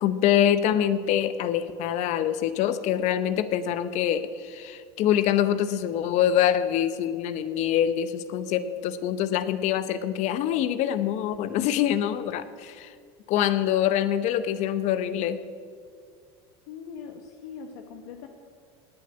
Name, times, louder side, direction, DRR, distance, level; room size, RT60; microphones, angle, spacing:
voice 1, 0.0-12.9 13.3-15.4, left 10 dB, 55° left, 13 dB, 0.8 m, -25 dB
voice 2, 16.7-18.3, left 6 dB, 75° left, 4 dB, 1.3 m, -41 dB
18.5 x 7.6 x 8.7 m, 2.1 s
supercardioid pair, 110°, 14 cm